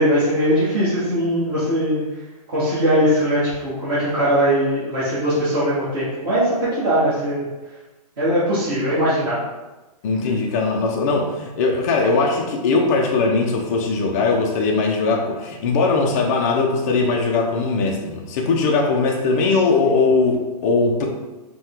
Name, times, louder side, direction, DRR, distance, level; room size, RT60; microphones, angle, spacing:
voice 1, 0.0-2.0 2.5-7.5 8.2-9.5 19.8-20.1, equal, 35° right, -10 dB, 1.5 m, -20 dB
voice 2, 10.0-21.1, left 3 dB, 25° left, 0 dB, 0.4 m, -20 dB
5.3 x 2.2 x 3.6 m, 1.1 s
hypercardioid pair, 160°, 20 cm